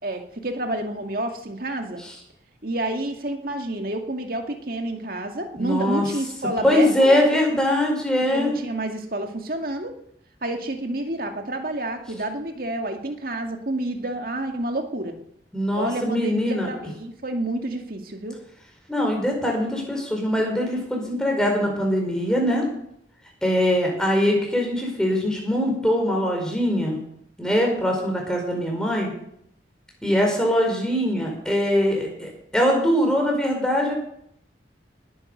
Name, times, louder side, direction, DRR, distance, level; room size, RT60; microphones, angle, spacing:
voice 1, 0.0-2.0 2.6-7.2 8.3-10.0 10.4-15.2 15.8-18.4, right 1 dB, 50° right, 4 dB, 2.2 m, -29 dB
voice 2, 5.6-6.0 6.6-8.5 15.5-16.7 18.9-22.6 23.4-27.0 27.4-29.1 30.0-33.9, left 1 dB, 5° left, 1 dB, 4.8 m, -22 dB
19.0 x 9.8 x 6.8 m, 0.72 s
head